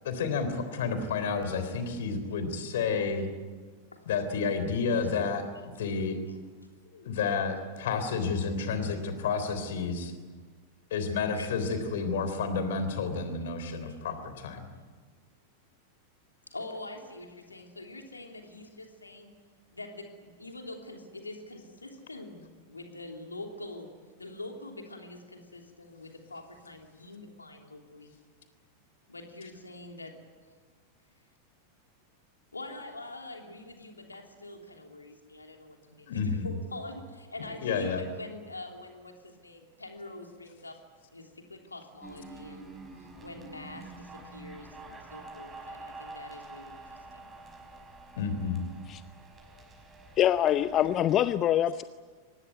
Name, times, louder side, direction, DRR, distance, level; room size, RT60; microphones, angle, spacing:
voice 1, 0.0-3.3 4.1-5.4 5.8-6.2 6.9-10.1 10.9-14.7 36.1-36.5 37.4-38.0 48.2-48.6, left 5 dB, 60° left, 9 dB, 3.6 m, -30 dB
voice 2, 16.5-19.3 19.7-23.9 24.2-28.1 29.1-30.2 32.5-40.8 41.1-42.8 43.2-47.3, left 2 dB, 80° left, 3 dB, 3.2 m, -44 dB
sound 1, 42.0-51.2, right 3 dB, 20° right, 5.6 m, -47 dB
voice 3, 50.2-51.8, left 11 dB, 30° left, 14 dB, 0.6 m, -24 dB
24.5 x 19.5 x 9.5 m, 1.5 s
figure-of-eight pair, 90°, 0 cm